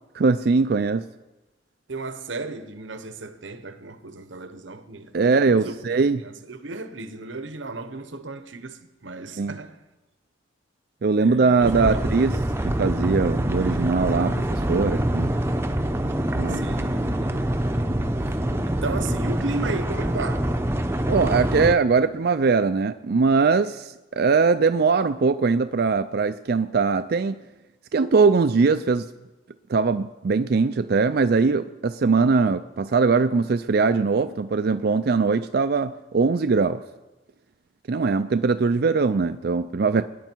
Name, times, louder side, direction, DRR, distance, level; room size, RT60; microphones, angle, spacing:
voice 1, 0.2-1.1 5.1-6.2 9.4-9.6 11.0-12.4 12.6-15.3 16.4-16.7 21.1-27.4 27.9-29.1 29.7-36.8 37.9-40.0, right 4 dB, 55° right, 0.4 m, -21 dB
voice 2, 1.9-9.8 11.2-12.0 16.5-17.4 18.2-18.4 18.6-20.5, right 3 dB, 80° right, 1.0 m, -35 dB
sound 1, 11.6-21.7, right 1 dB, 15° right, 0.7 m, -25 dB
22.0 x 10.0 x 4.6 m
head